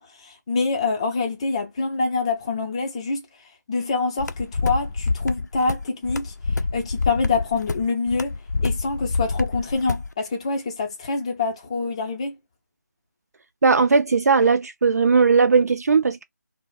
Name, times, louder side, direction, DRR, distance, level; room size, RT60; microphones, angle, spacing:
voice 1, 0.0-3.2 3.7-6.3 6.7-8.4 8.6-12.3, left 4 dB, 20° left, 0.5 m, -25 dB
sound 1, 4.2-10.1, left 3 dB, 70° left, 0.4 m, -27 dB
voice 2, 13.6-16.2, right 4 dB, 60° right, 0.4 m, -18 dB
2.3 x 2.0 x 3.8 m
figure-of-eight pair, 165°, 10 cm